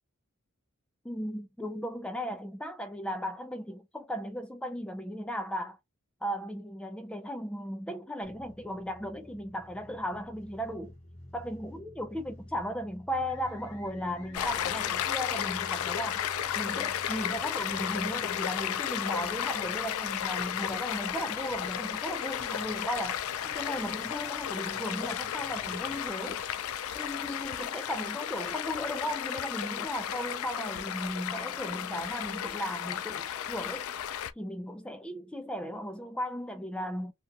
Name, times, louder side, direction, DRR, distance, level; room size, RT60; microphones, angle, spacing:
voice 1, 1.0-5.8 6.2-10.9 11.3-16.3 16.6-26.4 26.9-33.9 34.4-37.1, equal, 5° left, 0.3 m, -36 dB
sound 1, 8.2-26.1, left 1 dB, 30° left, 1.1 m, -52 dB
sound 2, 13.3-19.5 21.0-27.5, left 4 dB, 60° left, 1.1 m, -52 dB
Stream, 14.3-34.3, left 10 dB, 90° left, 0.3 m, -34 dB
2.9 x 2.3 x 2.7 m
head